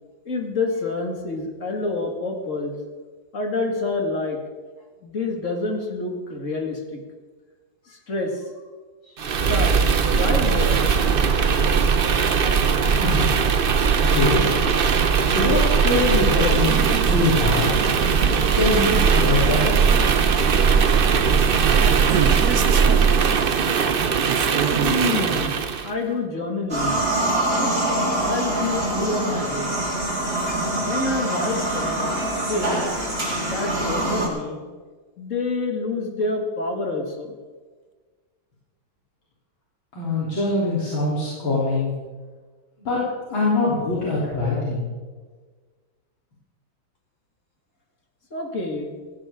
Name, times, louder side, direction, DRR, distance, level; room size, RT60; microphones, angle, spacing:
voice 1, 0.3-2.8 3.3-4.4 5.0-7.0 7.9-8.5 9.1-9.2 9.5-9.7 10.1-10.9 24.8-25.6 25.8-27.0 27.6-27.7 28.2-29.7 30.5-32.2 32.5-32.8 33.4-34.6 35.2-37.4 48.3-49.0, left 3 dB, 40° left, 2 dB, 2.4 m, -28 dB
sound 1, 9.2-25.9, right 6 dB, 85° right, 0.4 m, -19 dB
voice 2, 12.8-13.8 14.0-14.4 15.3-17.7 18.5-19.7 40.0-41.9 42.8-43.0 43.3-44.8, left 2 dB, 85° left, -7 dB, 4.3 m, -23 dB
sound 2, 16.5-25.4, right 8 dB, 60° right, 1.2 m, -29 dB
sound 3, 26.7-34.3, right 1 dB, 30° right, 4.0 m, -24 dB
17.5 x 16.0 x 3.8 m, 1.4 s
omnidirectional pair, 2.1 m